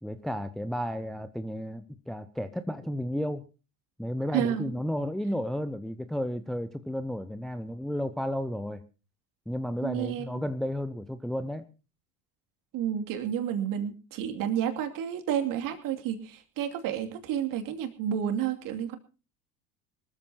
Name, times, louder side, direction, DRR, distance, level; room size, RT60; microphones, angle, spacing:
voice 1, 0.0-3.4 4.0-8.8 9.5-11.7, equal, ahead, 11 dB, 0.6 m, -33 dB
voice 2, 4.3-4.7 9.8-10.3 12.7-19.0, right 9 dB, 45° right, 5 dB, 2.7 m, -30 dB
24.0 x 13.5 x 2.9 m, 0.34 s
figure-of-eight pair, 75°, 47 cm